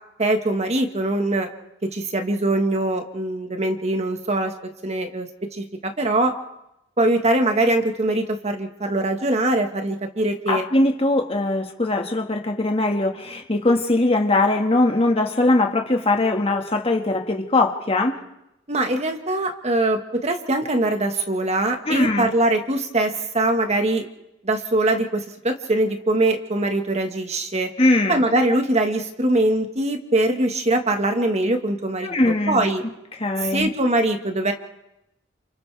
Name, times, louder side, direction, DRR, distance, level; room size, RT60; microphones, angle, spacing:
voice 1, 0.2-1.5 1.8-4.5 4.8-6.3 7.0-10.6 18.7-24.0 24.4-27.7 28.1-32.8 33.5-34.5, right 2 dB, 35° right, 5 dB, 1.6 m, -22 dB
voice 2, 10.5-18.2 21.9-22.3 27.8-28.2 32.0-32.7 33.2-33.7, left 2 dB, 30° left, 3 dB, 1.8 m, -21 dB
30.0 x 28.0 x 3.4 m, 0.87 s
head